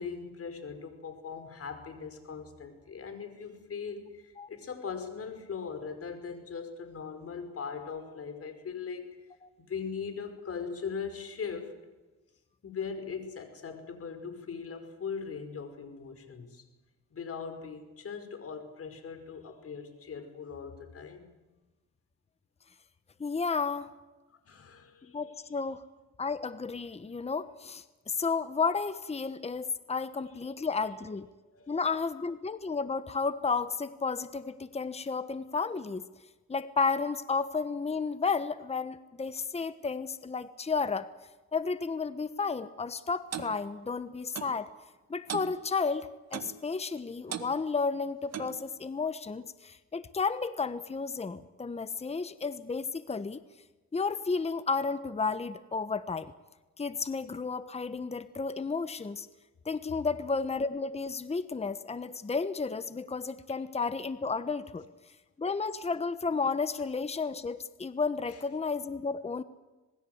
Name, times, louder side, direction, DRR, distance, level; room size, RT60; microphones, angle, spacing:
voice 1, 0.0-9.2 9.6-11.7 12.6-16.7 17.1-21.3 24.5-25.2 30.4-30.5 31.5-31.8 68.3-68.4, left 6 dB, 50° left, 7 dB, 5.3 m, -40 dB
voice 2, 23.2-23.9 25.1-25.8 26.2-31.3 31.7-36.0 36.5-41.1 41.5-44.7 45.1-53.4 53.9-56.3 56.8-59.3 59.6-64.8 65.4-69.4, left 4 dB, 20° left, 13 dB, 1.2 m, -32 dB
Clock, 43.3-43.5 44.4-44.6 45.3-45.5 46.3-46.6 47.3-47.5 48.3-48.6, right 9 dB, 60° right, 1.9 m, -37 dB
26.5 x 20.5 x 8.0 m, 1.2 s
cardioid pair, 90°, 30 cm